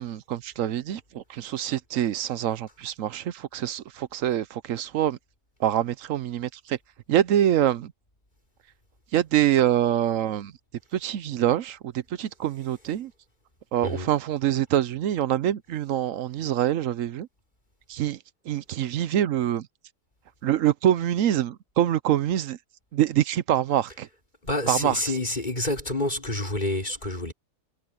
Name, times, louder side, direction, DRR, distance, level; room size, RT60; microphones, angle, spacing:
voice 1, 0.0-5.2 5.6-6.8 7.1-7.9 9.1-10.5 10.9-13.1 13.7-17.3 17.9-18.2 18.5-19.7 20.4-22.6 22.9-24.1 24.7-25.0, right 11 dB, 65° right, 0.9 m, -25 dB
voice 2, 24.4-27.3, left 1 dB, 25° left, 4.9 m, -28 dB
omnidirectional pair, 1.8 m